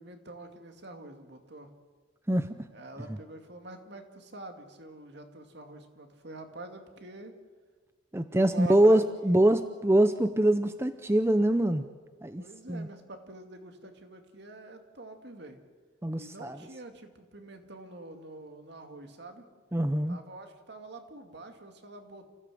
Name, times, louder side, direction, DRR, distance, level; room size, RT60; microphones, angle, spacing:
voice 1, 0.0-1.7 2.7-7.3 8.2-9.3 12.4-15.6 16.2-19.5 20.1-22.3, right 2 dB, 60° right, 6 dB, 2.3 m, -46 dB
voice 2, 8.1-11.9 12.2-12.9 16.0-16.6 19.7-20.2, right 1 dB, 15° right, 10 dB, 0.6 m, -24 dB
28.5 x 15.5 x 7.7 m, 1.5 s
head